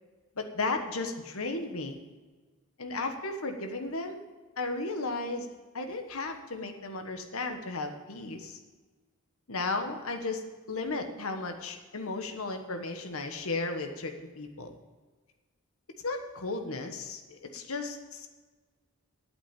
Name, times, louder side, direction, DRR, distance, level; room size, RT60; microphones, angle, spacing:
voice 1, 0.4-2.0 2.8-4.2 4.6-5.5 5.7-8.6 9.5-14.7 16.0-18.3, left 3 dB, 65° left, 6 dB, 1.3 m, -35 dB
8.7 x 8.7 x 9.1 m, 1.3 s
head